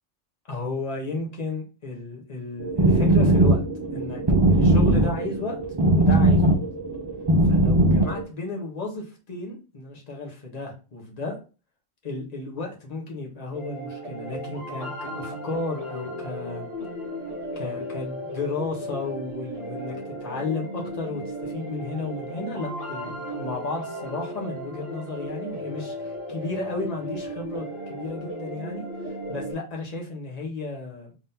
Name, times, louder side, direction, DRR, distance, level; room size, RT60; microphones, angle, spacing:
voice 1, 0.5-3.6 3.9-5.6 5.9-6.5 7.4-11.4 12.0-16.7 17.5-31.1, left 3 dB, 35° left, 0 dB, 1.1 m, -33 dB
sound 1, 2.6-8.2, right 1 dB, 30° right, 0.5 m, -20 dB
sound 2, 13.5-29.5, equal, 55° left, 1.6 m, -35 dB
3.6 x 3.6 x 2.8 m, 0.34 s
omnidirectional pair, 1.3 m